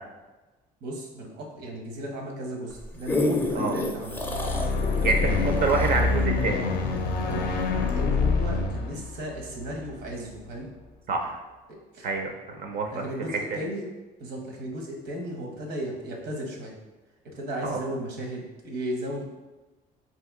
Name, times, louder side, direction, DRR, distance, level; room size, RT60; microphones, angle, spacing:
voice 1, 0.8-4.2 4.9-5.4 7.3-7.6 7.9-10.7 11.7-12.1 12.9-13.9 14.2-16.7 17.2-19.2, right 1 dB, 80° right, 0 dB, 0.8 m, -35 dB
sound 1, 2.7-7.4 7.9-8.0, left 2 dB, 10° left, 0.4 m, -30 dB
sound 2, 4.0-10.4, left 3 dB, 70° left, 0.4 m, -26 dB
voice 2, 5.0-6.6 11.1-11.4 12.0-13.4 17.6-17.8, right 3 dB, 60° right, 3 dB, 0.5 m, -27 dB
2.8 x 2.8 x 3.5 m, 1.2 s
cardioid pair, 110°, 17 cm